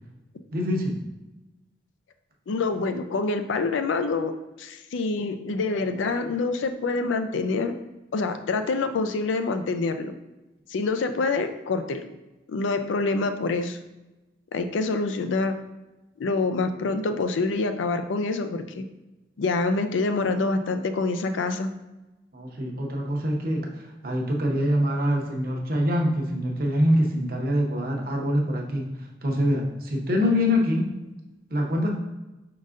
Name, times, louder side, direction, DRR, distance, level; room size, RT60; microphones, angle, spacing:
voice 1, 0.5-1.0 22.3-30.9 31.5-31.9, equal, 50° right, 0 dB, 0.8 m, -25 dB
voice 2, 2.5-4.3 4.6-7.7 8.1-10.1 10.7-12.0 12.5-13.8 14.5-15.5 16.2-18.8 19.4-21.7, left 3 dB, 85° left, 8 dB, 0.4 m, -26 dB
5.2 x 3.8 x 2.5 m, 1.0 s
head